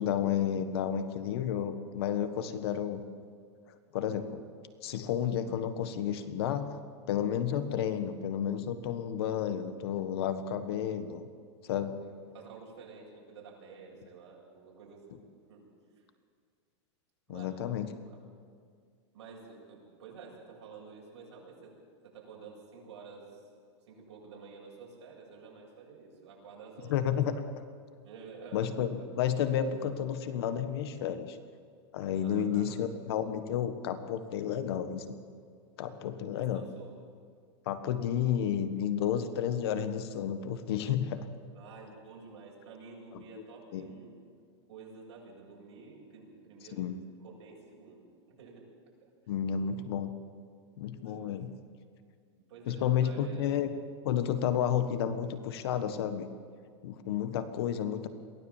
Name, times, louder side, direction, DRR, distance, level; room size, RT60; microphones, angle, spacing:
voice 1, 0.0-3.0 3.9-4.4 4.8-6.7 7.1-11.3 11.6-12.0 17.3-17.9 26.9-27.3 28.5-31.4 31.9-35.2 35.8-36.6 37.6-41.3 43.1-43.4 43.7-43.9 46.7-46.9 49.3-50.1 50.8-51.5 52.7-53.7 54.0-56.3 56.8-58.1, left 9 dB, 60° left, 10 dB, 1.5 m, -31 dB
voice 2, 12.0-15.2 15.5-15.7 16.0-16.1 17.3-17.6 18.0-18.2 19.1-21.7 22.0-23.5 23.8-27.4 28.0-29.1 32.2-32.8 36.3-36.9 41.5-44.2 44.7-46.9 47.2-48.7 49.5-49.6 51.0-51.3 52.5-53.5, right 5 dB, 70° right, -2 dB, 7.9 m, -50 dB
23.0 x 16.0 x 7.4 m, 2.1 s
supercardioid pair, 165°, 15 cm